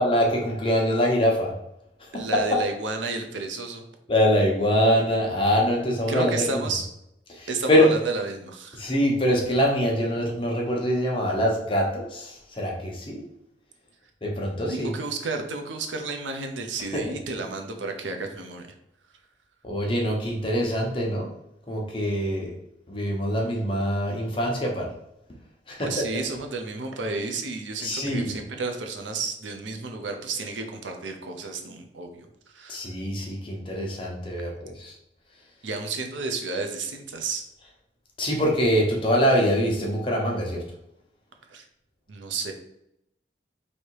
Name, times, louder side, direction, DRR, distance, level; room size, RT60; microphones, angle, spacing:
voice 1, 0.0-1.6 2.0-2.2 4.1-6.6 7.3-7.9 8.8-13.2 14.2-14.9 16.9-17.0 19.6-21.3 21.7-22.5 22.9-24.9 25.7-25.9 27.8-28.3 32.7-34.9 38.2-40.6, equal, 30° left, -1 dB, 0.9 m, -24 dB
voice 2, 2.1-3.8 6.1-6.9 7.5-8.9 14.7-18.7 25.8-32.8 35.6-37.5 41.5-41.6 42.1-42.5, right 3 dB, 90° right, 4 dB, 0.6 m, -31 dB
3.2 x 2.8 x 4.6 m, 0.81 s
head